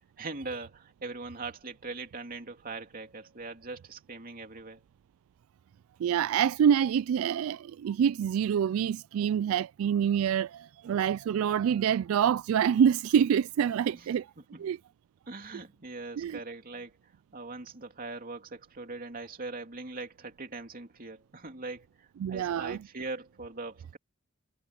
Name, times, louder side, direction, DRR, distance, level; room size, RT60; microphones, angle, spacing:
voice 1, 0.2-4.8 13.9-14.1 14.4-14.7 15.3-17.0 17.3-24.0, right 3 dB, 45° right, 2.8 m, -41 dB
voice 2, 6.0-14.3 14.6-14.8 16.2-16.4 22.2-22.8, right 8 dB, 75° right, 0.3 m, -26 dB
head